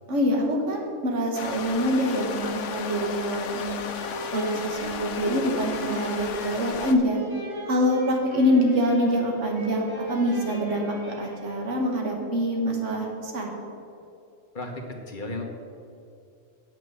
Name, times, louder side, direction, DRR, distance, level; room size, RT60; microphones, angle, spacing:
voice 1, 0.1-3.9 4.3-7.2 7.7-13.5, equal, 70° right, 0 dB, 1.9 m, -25 dB
sound 1, 1.3-6.9, left 6 dB, 70° left, 1.0 m, -34 dB
sound 2, 3.9-12.0, right 1 dB, 15° right, 1.9 m, -41 dB
voice 2, 14.5-15.4, left 2 dB, 40° left, 1 dB, 1.4 m, -34 dB
8.3 x 6.0 x 7.9 m, 2.5 s
omnidirectional pair, 1.3 m